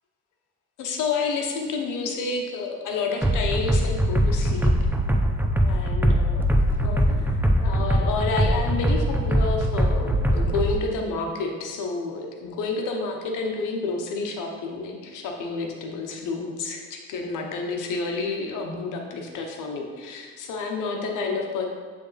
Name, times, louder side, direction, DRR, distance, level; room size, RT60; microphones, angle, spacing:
voice 1, 0.8-4.7 5.6-6.5 6.8-21.7, left 4 dB, 90° left, 2 dB, 0.9 m, -30 dB
sound 1, 3.2-10.7, equal, 5° right, 0.5 m, -22 dB
7.7 x 3.5 x 4.0 m, 1.5 s
cardioid pair, 90°, 30 cm